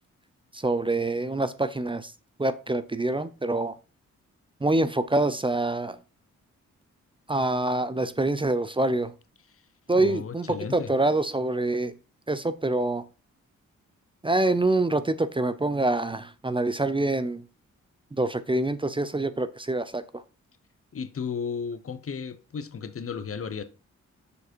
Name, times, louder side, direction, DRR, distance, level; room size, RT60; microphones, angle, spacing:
voice 1, 0.5-2.1 2.4-3.7 4.6-6.0 7.3-9.1 9.9-11.9 12.3-13.0 14.2-17.4 18.2-20.2, right 2 dB, 15° right, 0.6 m, -26 dB
voice 2, 9.9-10.9 20.9-23.6, left 6 dB, 45° left, 0.9 m, -34 dB
6.8 x 4.8 x 4.5 m
cardioid pair, 70°, 30 cm